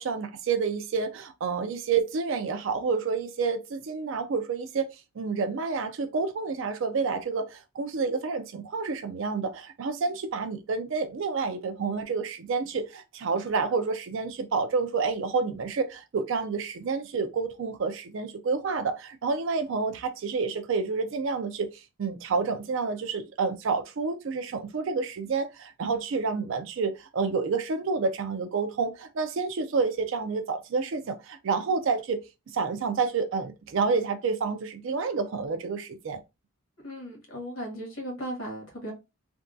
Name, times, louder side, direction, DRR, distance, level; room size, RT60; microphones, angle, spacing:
voice 1, 0.0-4.9 5.2-32.2 32.5-36.2, right 4 dB, 60° right, 0.4 m, -29 dB
voice 2, 36.8-38.9, equal, 70° left, 1.5 m, -36 dB
3.5 x 2.2 x 2.5 m
head